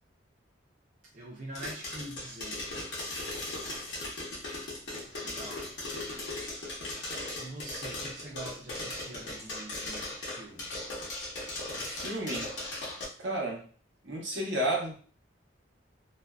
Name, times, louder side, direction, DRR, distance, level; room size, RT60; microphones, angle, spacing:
voice 1, 1.1-2.7 5.1-5.7 7.4-10.7, right 1 dB, 40° right, 0.4 m, -44 dB
sound 1, 1.5-13.0, left 2 dB, 60° left, 0.8 m, -38 dB
voice 2, 11.7-12.5 13.2-13.7 14.0-15.0, right 1 dB, 75° right, 0.9 m, -32 dB
2.5 x 2.2 x 2.2 m
head